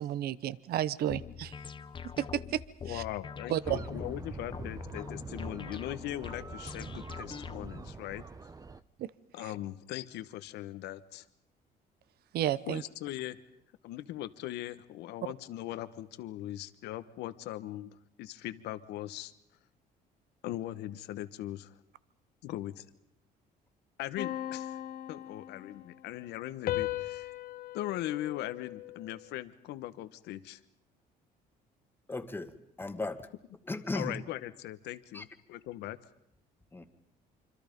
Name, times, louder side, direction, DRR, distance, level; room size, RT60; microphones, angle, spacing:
voice 1, 0.0-1.5 2.2-2.6 2.9-3.0 3.5-3.8 9.0-9.1 12.3-12.8, right 12 dB, 65° right, 18 dB, 0.9 m, -31 dB
sound 1, 1.1-7.9, left 6 dB, 30° left, 1.0 m, -44 dB
voice 2, 2.8-8.2 9.3-11.2 12.7-13.4 13.8-19.3 20.4-21.7 22.4-22.8 24.0-24.8 25.1-27.3 27.7-30.6 33.9-36.0, left 14 dB, 85° left, 12 dB, 1.2 m, -40 dB
sound 2, 3.6-8.8, right 4 dB, 20° right, 0.9 m, -45 dB
sound 3, 24.2-25.9 26.7-29.3, left 14 dB, 60° left, 1.2 m, -38 dB
voice 3, 32.1-33.3 33.7-34.2 35.1-35.2 36.7-36.8, left 2 dB, 10° left, 8 dB, 1.9 m, -36 dB
26.0 x 25.5 x 5.3 m, 0.78 s
cardioid pair, 110°, 17 cm